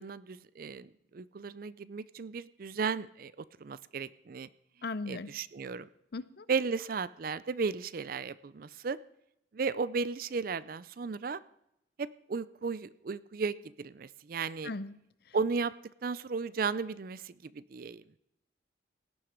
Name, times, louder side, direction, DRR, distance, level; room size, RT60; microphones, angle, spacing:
voice 1, 0.0-4.5 5.1-5.9 6.5-9.0 9.5-11.4 12.0-14.7 15.3-15.7 16.0-18.0, right 5 dB, 50° right, 17 dB, 0.4 m, -35 dB
voice 2, 4.8-5.3 6.1-6.4 14.6-14.9, left 3 dB, 55° left, 16 dB, 0.6 m, -37 dB
17.0 x 9.7 x 5.1 m, 0.79 s
head